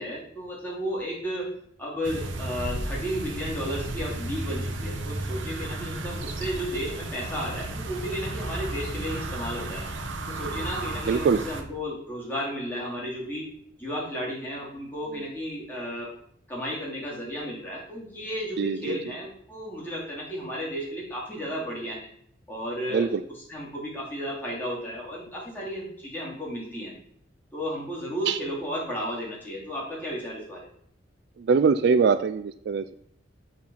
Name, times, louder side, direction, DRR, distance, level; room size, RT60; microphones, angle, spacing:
voice 1, 0.0-1.5 1.8-9.8 10.3-13.5 13.8-16.1 16.5-22.1 22.5-23.1 23.5-26.9 27.5-30.7, equal, 10° left, -6 dB, 3.0 m, -33 dB
sound 1, 2.0-11.6, right 2 dB, 80° right, 1.0 m, -33 dB
voice 2, 11.1-11.4 18.6-19.0 22.9-23.2 28.3-28.4 31.4-32.9, right 5 dB, 60° right, 13 dB, 0.3 m, -23 dB
7.6 x 4.5 x 5.5 m, 0.66 s
head